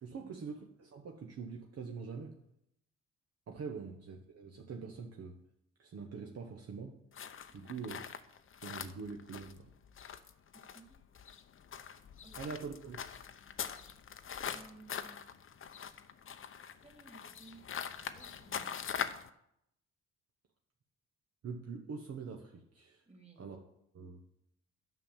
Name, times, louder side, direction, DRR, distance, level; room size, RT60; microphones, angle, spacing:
voice 1, 0.0-2.4 3.5-5.4 5.8-7.0 7.5-8.0 8.6-9.7 12.4-13.0 21.4-23.0 23.4-23.6 23.9-24.2, right 5 dB, 55° right, 2 dB, 1.2 m, -44 dB
sound 1, 7.1-19.3, left 7 dB, 45° left, 0.8 m, -43 dB
voice 2, 7.5-7.9 10.5-11.0 12.2-12.7 14.5-15.3 16.8-17.8 18.1-19.3 23.1-23.5, right 3 dB, 20° right, 1 dB, 2.8 m, -58 dB
9.9 x 5.7 x 7.3 m, 0.77 s
cardioid pair, 90°, 30 cm